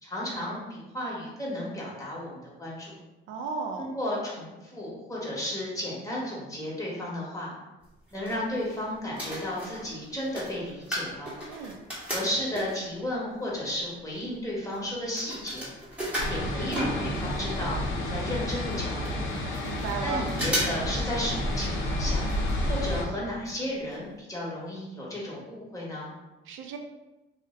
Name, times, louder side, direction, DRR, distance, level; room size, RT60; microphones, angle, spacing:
voice 1, 0.0-3.0 3.8-7.5 8.1-11.3 12.1-15.7 16.3-19.3 20.0-22.3 22.7-26.1, left 1 dB, 15° left, -5 dB, 1.2 m, -33 dB
voice 2, 3.3-3.9 11.5-11.7 19.6-20.2 26.5-26.8, right 5 dB, 85° right, 3 dB, 0.4 m, -34 dB
sound 1, 7.8-8.8 9.1-13.0 13.6-13.7 13.8-17.5 17.7-17.8 18.0-18.1 18.7-18.8 19.0-19.9 20.3-20.9 21.2-21.3 22.3-22.6 22.9-23.0 23.5-23.6 23.9-24.0, equal, 5° right, 1.1 m, -35 dB
sound 2, 16.2-23.0, left 1 dB, 80° left, 0.6 m, -30 dB
2.5 x 2.1 x 3.7 m, 1.0 s
cardioid pair, 90°, 20 cm